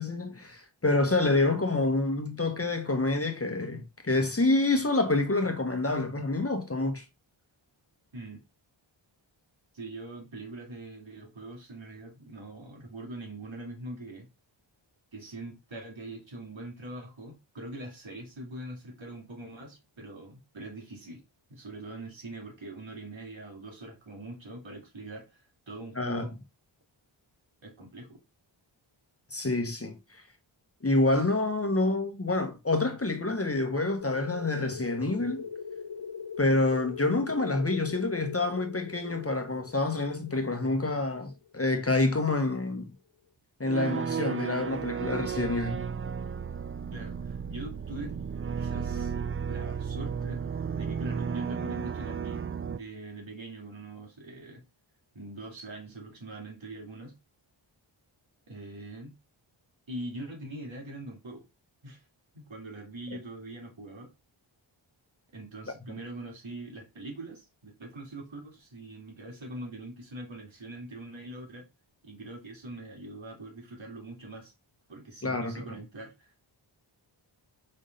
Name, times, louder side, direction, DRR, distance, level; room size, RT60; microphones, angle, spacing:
voice 1, 0.0-7.0 26.0-26.3 29.3-30.0 30.8-35.4 36.4-42.9 43.6-45.8 75.2-75.6, left 2 dB, 30° left, 1.1 m, -27 dB
voice 2, 9.7-14.3 15.1-21.2 21.5-26.3 27.6-28.2 46.9-48.3 48.6-49.1 49.5-50.4 50.7-54.6 55.1-57.1 58.5-59.2 59.9-61.4 61.8-62.0 62.3-64.1 65.3-71.6 72.0-74.5 74.9-76.4, right 2 dB, 70° right, 2.7 m, -43 dB
sound 1, 34.0-42.3, left 6 dB, 60° left, 0.7 m, -41 dB
sound 2, 43.7-52.8, right 6 dB, 30° right, 0.4 m, -33 dB
5.4 x 3.5 x 5.3 m
wide cardioid pair, 75°, 48 cm